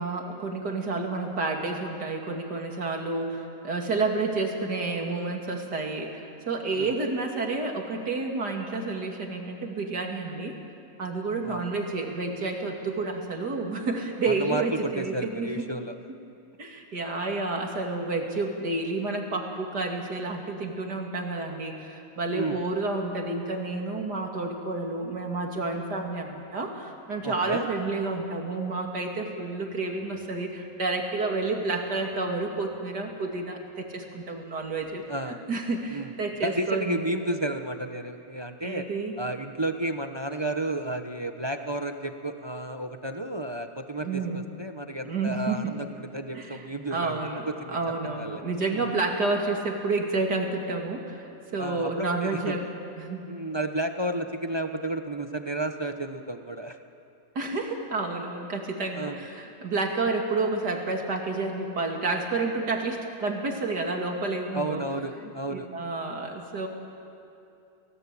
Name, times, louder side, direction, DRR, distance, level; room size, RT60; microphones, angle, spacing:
voice 1, 0.0-10.5 11.0-15.7 16.6-35.0 35.3-37.1 38.6-39.1 44.0-44.4 45.0-45.7 46.3-46.6 46.9-52.6 53.0-53.2 57.3-64.8 65.5-66.7, right 3 dB, 65° right, 2 dB, 3.2 m, -30 dB
voice 2, 14.3-15.9 22.3-22.6 27.2-27.7 35.1-35.4 35.9-36.1 36.4-38.9 39.2-47.2 47.5-47.8 48.0-48.4 48.7-48.8 51.6-52.6 53.3-56.8 58.9-59.2 64.5-65.7, right 1 dB, 20° right, 6 dB, 0.7 m, -32 dB
30.0 x 18.5 x 8.4 m, 2.7 s
omnidirectional pair, 1.9 m